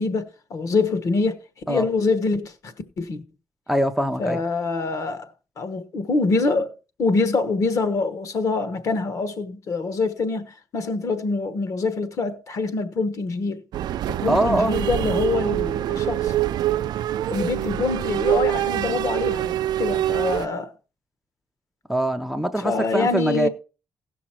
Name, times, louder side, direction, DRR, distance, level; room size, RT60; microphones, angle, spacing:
voice 1, 0.0-1.4 1.7-3.2 4.2-5.3 5.6-6.7 7.0-13.6 14.1-16.3 17.3-20.7 22.6-23.5, left 3 dB, 45° left, 1.2 m, -25 dB
voice 2, 3.7-4.4 14.3-14.7 21.9-23.5, right 1 dB, ahead, 0.5 m, -23 dB
sound 1, 13.7-20.5, right 12 dB, 80° right, 0.4 m, -25 dB
16.5 x 6.2 x 4.4 m
wide cardioid pair, 180°, 7 cm